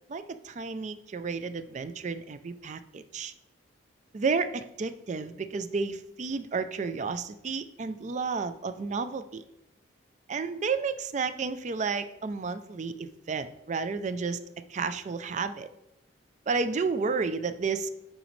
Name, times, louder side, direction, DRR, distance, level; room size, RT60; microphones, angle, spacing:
voice 1, 0.1-3.3 4.1-9.4 10.3-14.4 14.7-15.7 16.5-17.9, right 4 dB, 35° right, 12 dB, 0.3 m, -31 dB
9.0 x 5.1 x 3.1 m, 0.86 s
head